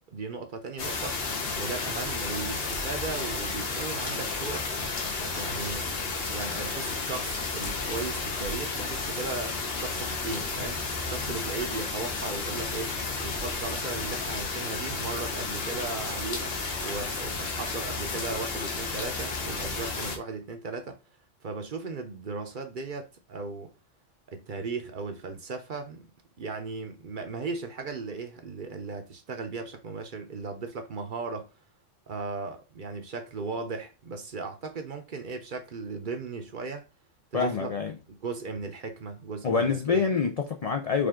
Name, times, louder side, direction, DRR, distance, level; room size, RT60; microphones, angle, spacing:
voice 1, 0.1-1.2 1.6-4.7 5.3-5.9 6.3-16.5 16.8-21.0 21.4-23.7 24.3-26.1 26.4-31.5 32.1-36.8 37.3-37.7 38.1-40.1, right 4 dB, 50° right, 0.7 m, -37 dB
sound 1, 0.8-20.2, left 3 dB, 55° left, 1.1 m, -32 dB
voice 2, 37.3-37.9 39.4-41.1, left 5 dB, 70° left, 0.3 m, -26 dB
5.0 x 2.4 x 3.6 m
omnidirectional pair, 1.3 m